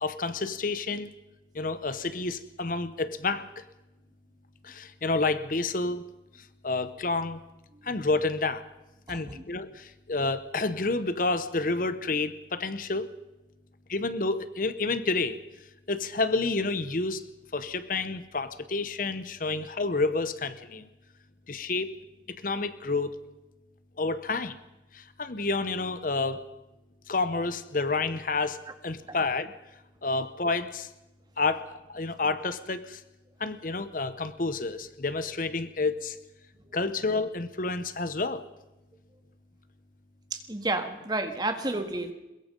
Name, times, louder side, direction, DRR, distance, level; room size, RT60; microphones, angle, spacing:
voice 1, 0.0-1.1 1.5-3.6 4.6-6.0 6.6-7.4 7.8-8.6 9.1-13.1 13.9-15.4 15.9-17.2 17.5-20.8 21.5-21.9 22.4-23.1 24.0-24.6 24.9-26.4 27.1-29.5 30.0-30.9 31.4-33.0 33.4-36.2 36.7-38.4, left 3 dB, 50° left, 12 dB, 0.9 m, -29 dB
voice 2, 9.1-9.4 29.1-29.2 40.3-42.1, right 2 dB, 25° right, 7 dB, 1.7 m, -31 dB
22.5 x 21.5 x 5.4 m, 0.99 s
head